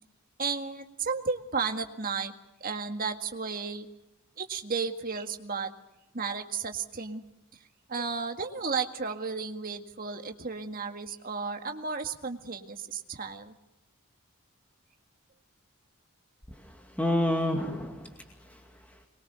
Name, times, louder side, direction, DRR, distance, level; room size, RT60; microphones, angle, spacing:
voice 1, 0.4-2.3 2.6-3.9 4.4-5.7 6.1-7.2 7.9-13.5, right 5 dB, 40° right, 5 dB, 1.9 m, -33 dB
voice 2, 16.5-19.1, left 1 dB, 5° left, 2 dB, 2.2 m, -31 dB
25.0 x 22.0 x 6.9 m, 0.97 s
head